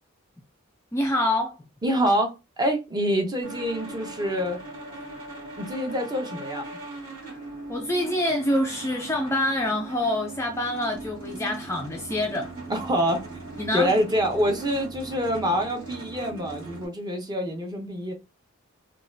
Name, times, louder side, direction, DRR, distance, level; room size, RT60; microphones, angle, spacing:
voice 1, 0.9-1.6 7.2-7.4 7.7-12.5 13.6-13.9, left 1 dB, 10° left, 0.3 m, -26 dB
voice 2, 1.8-4.6 5.6-6.7 12.7-13.3 13.7-18.1, equal, 20° right, 0.7 m, -26 dB
sound 1, 3.4-16.9, right 3 dB, 40° right, 1.9 m, -39 dB
3.8 x 2.3 x 2.6 m
head